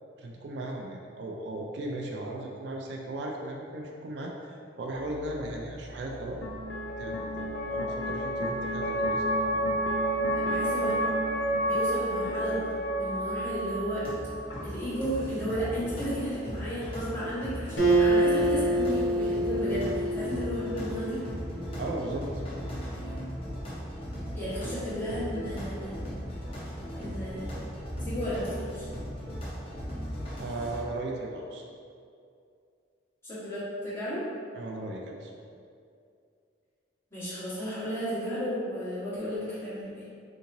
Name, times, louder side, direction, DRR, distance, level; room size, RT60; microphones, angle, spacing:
voice 1, 0.2-6.5 7.0-9.3 9.5-9.7 21.8-22.5 30.4-31.6 34.5-35.4, right 2 dB, 65° right, 0 dB, 0.4 m, -37 dB
sound 1, 4.9-15.3, right 1 dB, 65° left, 0.4 m, -31 dB
voice 2, 10.3-10.9 11.6-12.6 13.0-14.0 14.6-21.2 24.3-26.1 27.0-27.5 28.0-28.9 33.2-34.2 37.1-40.0, equal, 15° left, -13 dB, 1.4 m, -33 dB
sound 2, 13.9-30.8, equal, 30° left, 0.7 m, -37 dB
Acoustic guitar, 17.8-21.3, right 1 dB, 90° left, 0.8 m, -26 dB
3.6 x 2.9 x 2.6 m, 2.3 s
head